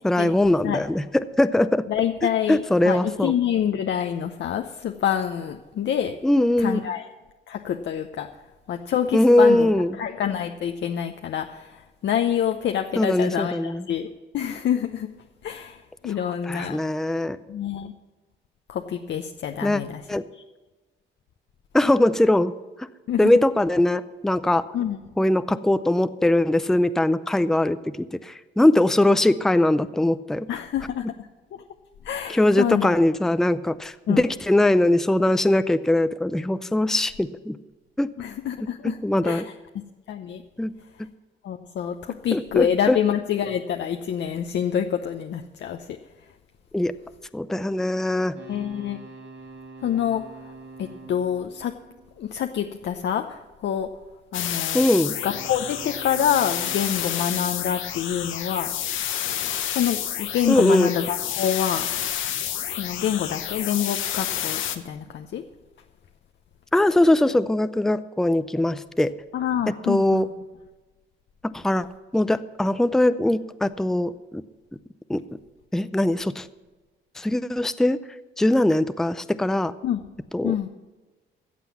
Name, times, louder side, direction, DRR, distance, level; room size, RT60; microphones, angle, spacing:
voice 1, 0.0-1.9 2.5-3.3 6.2-6.8 9.1-10.0 13.0-13.8 16.4-17.4 19.6-19.8 20.1-20.2 21.7-22.5 23.2-24.7 25.2-30.6 32.3-37.6 38.0-38.1 38.8-39.5 40.6-40.7 42.3-43.0 46.7-46.9 47.3-48.4 54.7-55.2 60.5-60.9 66.7-69.1 69.9-70.3 71.4-71.9 72.1-74.4 75.1-75.2 75.7-76.5 77.2-78.0 78.4-79.7 80.3-80.5, left 1 dB, ahead, 13 dB, 0.5 m, -21 dB
voice 2, 1.9-6.2 6.6-7.0 7.5-8.3 8.7-9.7 10.0-15.1 15.4-16.8 17.5-17.9 18.7-20.0 20.3-20.4 23.1-23.3 24.7-25.0 30.5-31.0 31.5-31.6 32.0-33.0 34.1-34.2 38.2-39.0 39.2-39.4 40.1-40.4 41.4-46.0 48.5-49.0 49.8-50.2 50.8-51.7 52.2-53.9 54.3-54.9 55.2-58.7 59.7-61.8 62.7-65.4 69.3-70.3 79.8-80.0 80.4-80.7, left 9 dB, 65° left, 5 dB, 0.7 m, -26 dB
sound 1, 48.3-52.7 55.1-58.4, right 3 dB, 60° right, 2.6 m, -45 dB
sound 2, 54.3-64.8, left 10 dB, 80° left, 1.0 m, -29 dB
14.5 x 7.7 x 7.1 m, 1.2 s
cardioid pair, 90°, 20 cm